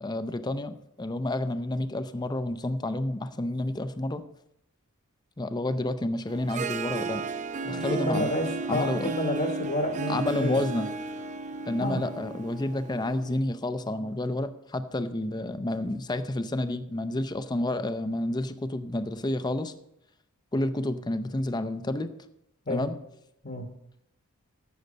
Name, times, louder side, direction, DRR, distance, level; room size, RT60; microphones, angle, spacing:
voice 1, 0.0-4.2 5.4-7.3 7.6-8.3 8.7-9.1 10.1-10.9 11.7-19.7 20.5-22.1 22.7-22.9, left 1 dB, 20° left, 10 dB, 0.5 m, -30 dB
Harp, 6.3-13.4, right 3 dB, 35° right, 0.5 m, -34 dB
voice 2, 7.7-10.6 11.8-12.0 22.7-22.9 23.4-23.7, left 1 dB, 40° left, 3 dB, 1.1 m, -30 dB
12.0 x 7.9 x 5.2 m, 0.81 s
head